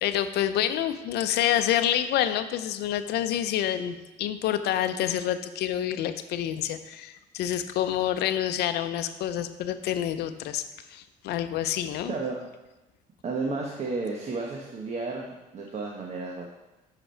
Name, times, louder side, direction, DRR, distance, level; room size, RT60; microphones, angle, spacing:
voice 1, 0.0-12.1, left 11 dB, 75° left, 10 dB, 0.6 m, -28 dB
voice 2, 12.1-12.4 13.2-16.5, right 3 dB, 40° right, 0 dB, 1.0 m, -32 dB
8.0 x 6.0 x 4.4 m, 1.0 s
cardioid pair, 110°, 17 cm